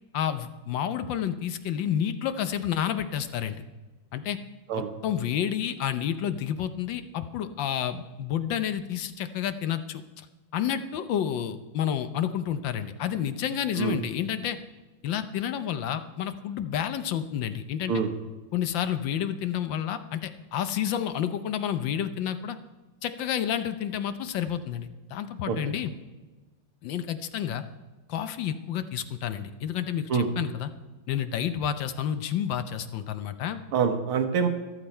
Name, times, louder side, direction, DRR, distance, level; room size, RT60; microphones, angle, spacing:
voice 1, 0.1-3.6 4.1-4.4 4.7-10.0 10.5-14.6 15.0-18.0 18.5-22.6 23.0-25.9 26.8-27.6 28.1-30.7 31.1-33.6, left 9 dB, 70° left, 11 dB, 1.3 m, -30 dB
voice 2, 33.7-34.5, right 6 dB, 90° right, 6 dB, 2.1 m, -25 dB
14.0 x 12.0 x 4.4 m, 1.2 s
omnidirectional pair, 2.3 m